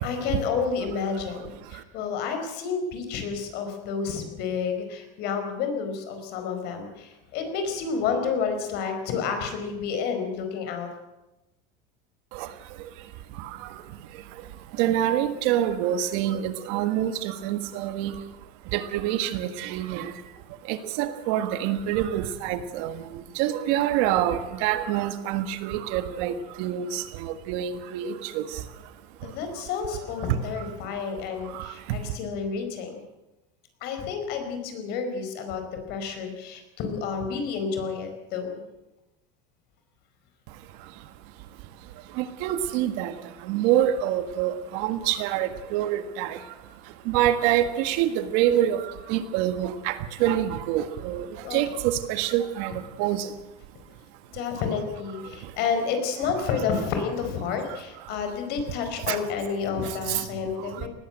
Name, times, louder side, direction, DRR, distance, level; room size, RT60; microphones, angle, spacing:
voice 1, 0.0-10.9 29.2-33.0 33.8-38.5 51.4-51.6 54.3-60.9, left 6 dB, 50° left, 6 dB, 4.8 m, -30 dB
voice 2, 14.8-18.1 18.7-20.1 20.7-23.0 23.4-28.4 31.6-31.7 42.2-43.1 43.5-46.4 47.1-48.8 49.1-51.3 51.5-52.7 53.0-53.3 59.1-59.2 60.1-60.2, right 11 dB, 60° right, 10 dB, 1.7 m, -26 dB
19.5 x 15.0 x 9.0 m, 0.99 s
cardioid pair, 155°, 21 cm